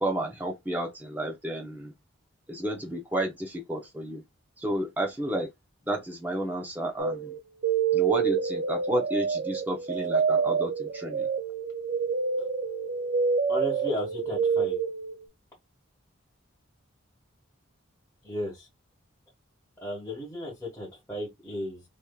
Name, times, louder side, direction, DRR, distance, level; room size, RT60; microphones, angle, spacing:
voice 1, 0.0-1.9 2.5-4.2 4.6-5.5 5.9-7.3 7.9-11.3, right 1 dB, 10° right, 0.7 m, -31 dB
sound 1, 7.0-15.2, right 6 dB, 50° right, 0.4 m, -27 dB
voice 2, 13.5-14.8 18.2-18.7 19.8-21.8, left 1 dB, 10° left, 1.3 m, -34 dB
3.4 x 3.0 x 2.3 m
head